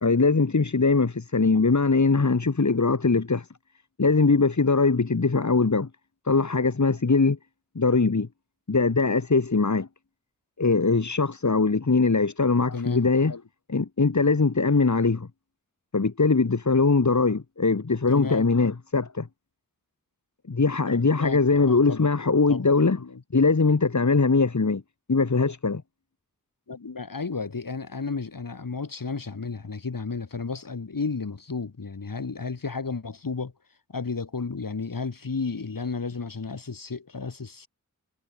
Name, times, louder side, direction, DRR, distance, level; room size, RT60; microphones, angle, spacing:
voice 1, 0.0-3.4 4.0-5.9 6.2-7.4 7.7-8.3 8.7-9.9 10.6-13.3 13.7-15.3 15.9-19.3 20.5-23.0 23.3-24.8 25.1-25.8, left 4 dB, 60° left, 3.2 m, -21 dB
voice 2, 12.7-13.4 18.1-18.5 20.9-22.1 22.5-22.7 23.0-23.2 26.7-33.5 33.9-37.7, left 4 dB, 85° left, 7.3 m, -33 dB
wide cardioid pair, 70°, 33 cm